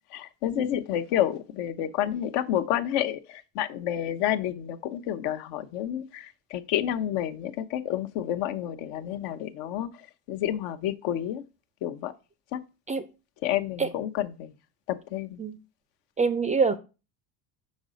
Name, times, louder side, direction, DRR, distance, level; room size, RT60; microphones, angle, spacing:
voice 1, 0.1-11.4 11.8-12.1 12.5-12.6 13.4-14.5 14.9-15.4, left 11 dB, 65° left, 0.8 m, -29 dB
voice 2, 16.2-16.8, right 5 dB, 15° right, 0.4 m, -24 dB
5.3 x 4.1 x 5.0 m
supercardioid pair, 90°, 45 cm